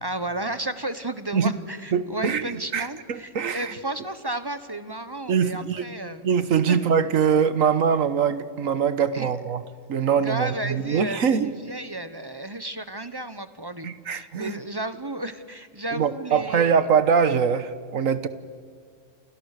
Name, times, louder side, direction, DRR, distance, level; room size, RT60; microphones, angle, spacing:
voice 1, 0.0-6.3 6.7-6.8 9.1-9.3 10.2-16.7, right 1 dB, 20° right, 11 dB, 1.1 m, -33 dB
voice 2, 1.9-3.7 5.3-5.8 6.2-9.6 9.9-11.5 13.8-14.5 15.9-18.3, right 7 dB, 90° right, 12 dB, 1.6 m, -23 dB
30.0 x 28.5 x 6.7 m, 2.1 s
omnidirectional pair, 1.3 m